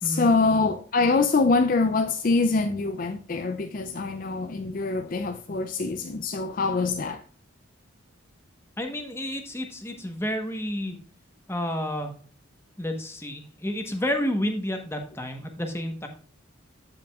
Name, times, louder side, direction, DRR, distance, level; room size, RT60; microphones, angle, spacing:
voice 1, 0.0-7.2, left 3 dB, 40° left, 0.4 m, -24 dB
voice 2, 8.8-11.0 11.5-12.1 12.8-16.1, left 1 dB, 10° left, 1.1 m, -30 dB
14.5 x 5.0 x 2.4 m
head